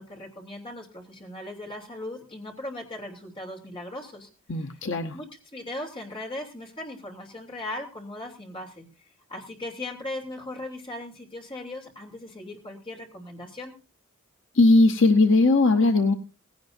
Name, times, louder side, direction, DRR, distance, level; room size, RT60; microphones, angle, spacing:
voice 1, 0.0-4.3 5.1-5.3 5.5-8.9 9.3-13.7, left 1 dB, 25° left, 1 dB, 3.1 m, -38 dB
voice 2, 4.5-5.2 14.5-16.1, left 2 dB, 60° left, 6 dB, 0.9 m, -19 dB
18.0 x 16.5 x 2.7 m, 0.32 s
head